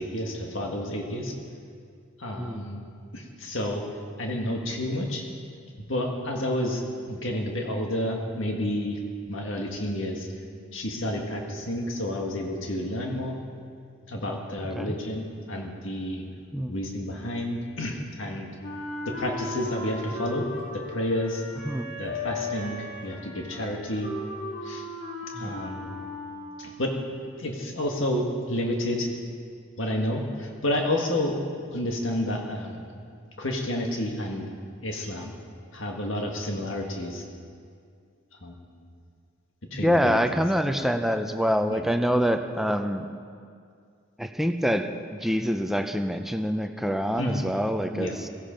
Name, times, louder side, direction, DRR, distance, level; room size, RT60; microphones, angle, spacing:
voice 1, 0.0-1.3 2.2-3.8 4.2-5.2 5.9-9.0 9.3-10.3 10.7-13.4 14.1-16.2 16.7-18.5 19.1-20.5 20.7-21.4 22.0-24.1 24.6-24.8 25.4-25.9 26.6-26.9 27.4-29.1 29.8-31.4 31.7-32.9 33.4-34.5 34.8-35.3 35.7-37.2 38.4-38.9 39.7-40.4 41.7-41.8 47.2-47.5 47.9-48.2, left 1 dB, 65° left, 1 dB, 1.8 m, -30 dB
Wind instrument woodwind instrument, 18.6-26.8, left 2 dB, 45° left, 3.7 m, -36 dB
voice 2, 39.7-43.1 44.2-48.3, equal, ahead, 6 dB, 0.6 m, -26 dB
17.0 x 15.0 x 5.2 m, 2.3 s
head